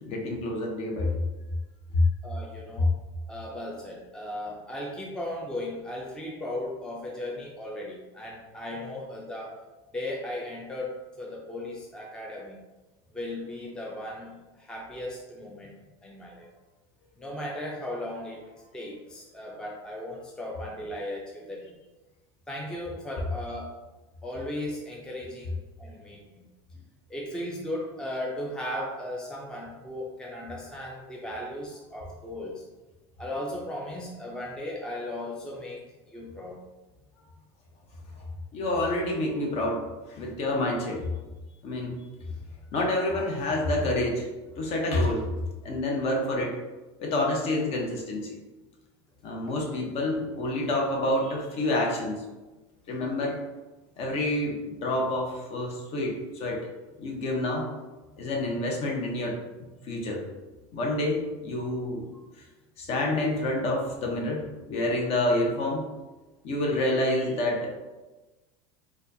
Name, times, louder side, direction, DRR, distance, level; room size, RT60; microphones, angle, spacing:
voice 1, 0.0-1.2 1.9-2.1 2.8-2.9 38.5-41.0 41.6-42.0 42.7-44.3 44.6-45.3 45.6-46.5 47.0-48.4 49.2-52.2 52.9-53.4 54.0-56.7 57.0-57.7 58.2-59.4 59.8-60.2 60.7-62.1 62.8-65.8 66.4-67.7, left 1 dB, 45° left, 0 dB, 0.8 m, -28 dB
voice 2, 2.2-2.9 3.3-9.5 9.9-12.6 13.1-16.5 17.2-18.4 18.7-21.8 22.5-23.7 24.2-26.4 27.1-32.6 33.2-35.8 36.1-36.6, left 1 dB, 5° left, -3 dB, 0.4 m, -36 dB
4.2 x 2.3 x 2.6 m, 1.2 s
supercardioid pair, 125°, 14 cm